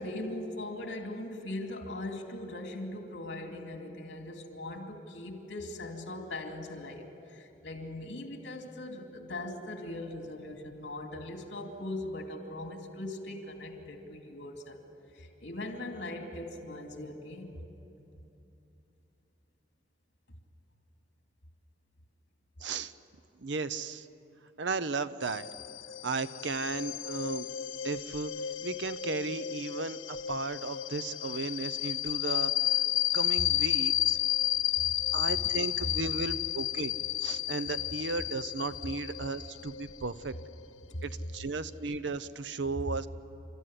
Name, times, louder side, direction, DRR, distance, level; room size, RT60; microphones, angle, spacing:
voice 1, 0.0-14.8 15.1-17.7 34.8-34.9 40.8-41.1, left 1 dB, 65° left, 3 dB, 2.6 m, -40 dB
voice 2, 22.6-22.9 23.4-24.1 24.6-25.4 26.0-27.5 27.8-28.3 28.6-32.5 33.1-34.2 35.1-36.9 37.2-40.3 41.0-43.1, right 4 dB, 70° right, 13 dB, 0.7 m, -35 dB
sound 1, 25.2-41.5, left 13 dB, 90° left, 0.9 m, -32 dB
29.5 x 14.0 x 9.9 m, 2.9 s
head